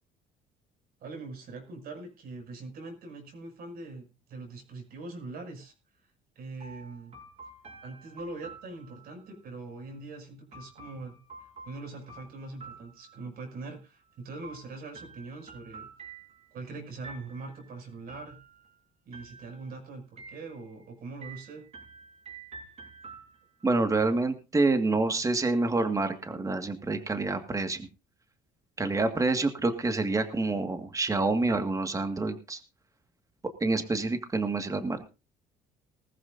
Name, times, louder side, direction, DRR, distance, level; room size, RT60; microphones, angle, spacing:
voice 1, 1.0-5.7 6.3-7.2 7.8-11.2 11.4-15.9 16.5-18.4 19.0-21.6, right 3 dB, 65° right, 3 dB, 6.6 m, -42 dB
sound 1, 6.6-9.3 10.5-13.5 14.4-16.6 17.0-17.6 18.1-18.8 19.1-19.8 20.2-20.8 21.2-23.7, right 4 dB, 40° right, 6.3 m, -49 dB
voice 2, 23.6-27.9 28.8-32.6 33.6-35.1, right 3 dB, 20° right, 7 dB, 2.0 m, -27 dB
19.5 x 14.0 x 2.7 m, 0.31 s
cardioid pair, 110°, 17 cm